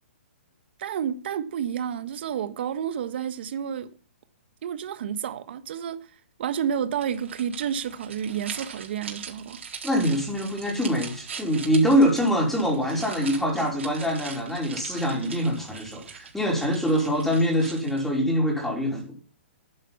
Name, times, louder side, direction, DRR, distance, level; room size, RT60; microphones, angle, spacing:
voice 1, 0.8-3.9 4.6-6.1 6.4-9.6, right 8 dB, 60° right, 1.4 m, -30 dB
sound 1, 7.0-18.2, right 6 dB, 75° right, 4.2 m, -41 dB
voice 2, 9.8-19.2, equal, 5° left, 4.5 m, -24 dB
11.0 x 9.3 x 5.8 m
hypercardioid pair, 140°, 7 cm